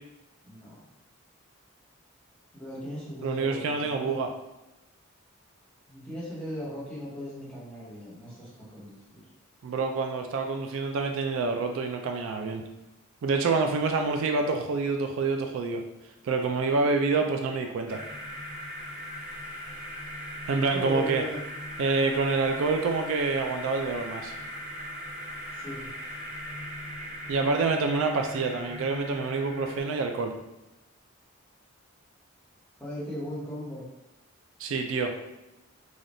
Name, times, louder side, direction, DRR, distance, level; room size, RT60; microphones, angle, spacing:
voice 1, 0.4-0.8 2.5-4.1 5.9-9.2 20.7-21.5 25.5-25.9 32.8-33.9, equal, 5° left, -9 dB, 1.0 m, -38 dB
voice 2, 3.2-4.3 9.6-12.6 13.2-15.8 16.2-18.0 20.5-21.2 21.8-24.3 27.3-30.3 34.6-35.1, right 4 dB, 70° right, 4 dB, 0.3 m, -27 dB
sound 1, 17.9-29.8, equal, 15° right, 1.0 m, -39 dB
3.3 x 2.3 x 2.5 m, 0.94 s
head